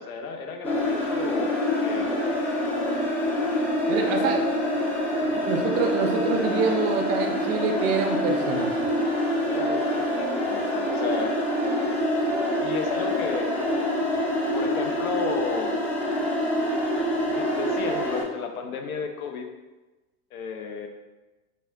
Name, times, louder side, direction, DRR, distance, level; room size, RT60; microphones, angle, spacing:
voice 1, 0.0-2.2 4.0-4.3 5.3-5.5 9.5-11.4 12.6-14.1 14.5-15.8 17.3-19.5 20.3-20.9, left 5 dB, 65° left, 4 dB, 0.7 m, -33 dB
sound 1, 0.6-18.2, left 1 dB, 5° left, 0.9 m, -26 dB
voice 2, 3.9-4.4 5.5-8.7, right 5 dB, 30° right, 3 dB, 0.4 m, -26 dB
4.1 x 3.6 x 2.3 m, 1.1 s
figure-of-eight pair, 90°, 47 cm